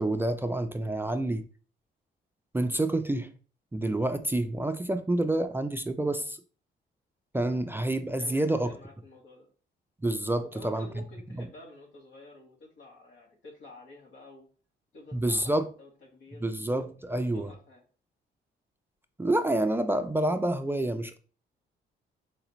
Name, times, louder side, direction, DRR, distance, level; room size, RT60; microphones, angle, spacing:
voice 1, 0.0-1.4 2.5-3.3 3.7-6.4 7.3-8.7 10.0-10.9 11.4-11.5 15.1-15.7 16.4-17.5 19.2-21.2, right 1 dB, 10° right, 0.4 m, -28 dB
voice 2, 8.2-9.5 10.4-14.5 14.9-16.5 17.1-17.8, left 2 dB, 75° left, 1.7 m, -50 dB
5.0 x 3.3 x 3.0 m
cardioid pair, 90°, 20 cm